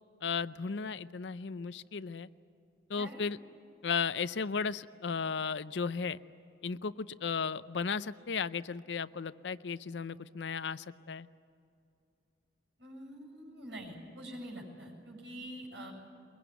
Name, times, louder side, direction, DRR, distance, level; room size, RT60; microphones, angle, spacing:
voice 1, 0.2-2.3 2.9-3.4 3.8-6.2 6.6-11.3, left 5 dB, 75° left, 16 dB, 0.6 m, -35 dB
voice 2, 12.8-15.9, right 1 dB, 75° right, 1 dB, 7.6 m, -45 dB
23.0 x 22.0 x 9.2 m, 2.6 s
head